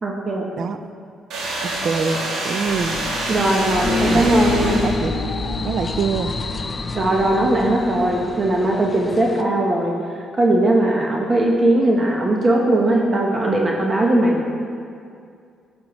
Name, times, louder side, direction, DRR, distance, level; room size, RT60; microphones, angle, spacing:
voice 1, 0.0-0.5 3.3-4.8 6.9-14.4, right 1 dB, 30° right, -1 dB, 1.0 m, -19 dB
sound 1, 1.3-5.3, right 2 dB, 85° right, 1.6 m, -26 dB
voice 2, 1.6-3.0 4.1-4.3 4.8-5.1 5.6-6.3, right 5 dB, 60° right, 9 dB, 0.5 m, -24 dB
sound 2, 2.7-8.7, left 3 dB, 60° left, 1.0 m, -28 dB
sound 3, 3.6-9.4, left 4 dB, 30° left, 0.5 m, -33 dB
11.5 x 6.4 x 3.1 m, 2.3 s
cardioid pair, 90°, 0 cm